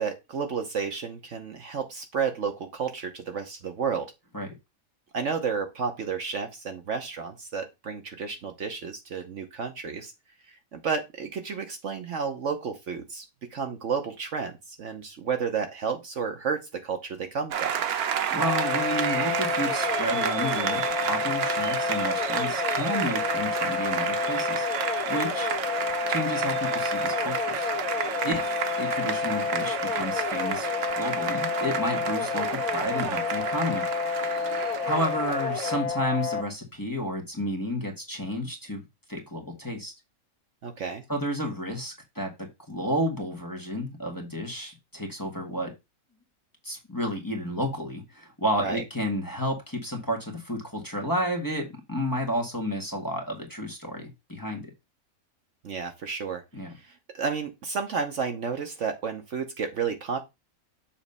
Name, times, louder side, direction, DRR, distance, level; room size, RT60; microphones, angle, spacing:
voice 1, 0.0-4.1 5.1-10.1 10.5-17.7 28.2-28.4 40.6-41.0 48.6-48.8 55.6-56.4 56.7-60.2, right 6 dB, 60° right, 1.1 m, -31 dB
Applause, 17.5-35.8, right 8 dB, 85° right, 1.3 m, -31 dB
voice 2, 18.3-24.7 25.1-25.5 26.1-27.7 28.2-30.7 30.9-33.8 34.8-38.8 39.1-39.9 41.1-45.7 46.6-54.7 56.5-56.7, equal, 15° left, 1.4 m, -31 dB
sound 1, 18.4-36.4, left 5 dB, 35° left, 0.6 m, -30 dB
7.2 x 3.1 x 5.4 m
omnidirectional pair, 1.5 m